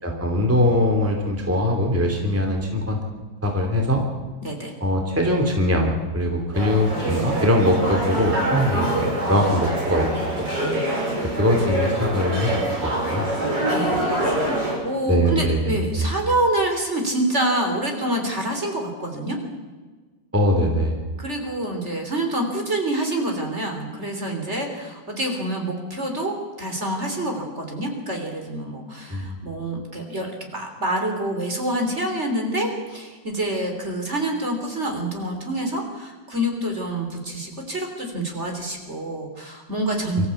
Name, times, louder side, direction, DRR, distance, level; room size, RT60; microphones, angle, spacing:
voice 1, 0.0-3.0 3.4-4.0 4.8-10.1 10.6-10.7 11.2-12.5 12.8-13.3 15.1-15.7 20.3-21.0 29.1-29.3 40.2-40.3, left 1 dB, 5° right, 2 dB, 2.8 m, -21 dB
voice 2, 4.4-4.7 13.7-14.0 14.8-19.4 21.2-40.3, right 1 dB, 35° right, 3 dB, 3.8 m, -27 dB
sound 1, 6.5-14.8, right 1 dB, 65° right, 6.4 m, -25 dB
24.5 x 14.5 x 8.5 m, 1.4 s
omnidirectional pair, 2.1 m